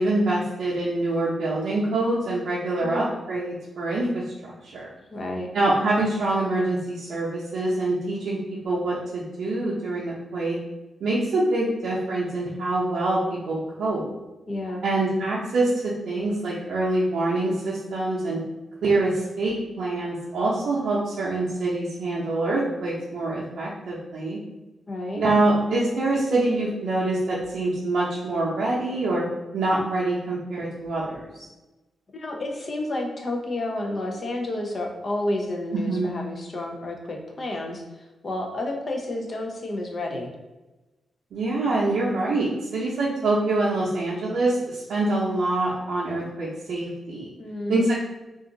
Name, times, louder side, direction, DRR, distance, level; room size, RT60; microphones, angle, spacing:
voice 1, 0.0-4.9 5.5-10.6 11.0-14.1 14.8-18.4 18.8-24.4 25.2-29.2 29.5-31.4 35.7-36.2 41.3-47.3 47.7-47.9, right 2 dB, 80° right, -7 dB, 0.6 m, -25 dB
voice 2, 5.1-5.5 14.5-14.8 24.9-25.2 32.1-40.3 47.4-47.9, left 1 dB, 45° left, 1 dB, 0.6 m, -30 dB
2.5 x 2.3 x 3.8 m, 1.1 s
cardioid pair, 95°, 0 cm